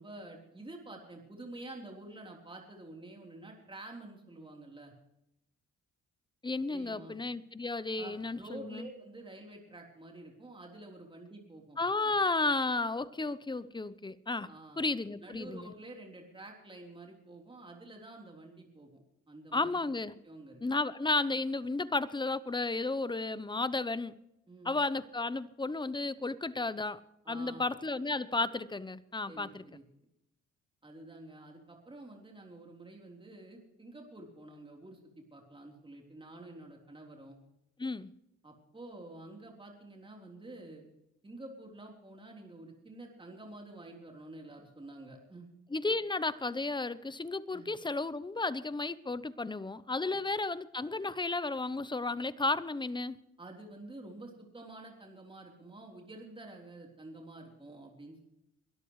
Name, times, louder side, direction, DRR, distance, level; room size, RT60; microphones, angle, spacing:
voice 1, 0.0-4.9 6.7-7.2 8.0-11.8 12.0-12.1 14.4-14.8 15.2-19.0 19.3-19.9 20.2-20.6 24.5-24.8 27.2-27.7 29.3-29.8 30.8-35.0 35.3-37.4 38.4-40.8 41.2-45.5 47.5-47.6 50.0-50.2 53.4-58.2, right 2 dB, 15° right, 1 dB, 3.7 m, -49 dB
voice 2, 6.4-8.9 11.8-14.5 14.8-15.7 19.5-20.2 20.6-24.1 24.6-27.0 27.3-29.6 37.8-38.1 45.7-53.2, left 3 dB, 15° left, 16 dB, 0.8 m, -33 dB
23.0 x 12.5 x 3.2 m, 0.84 s
cardioid pair, 90°, 30 cm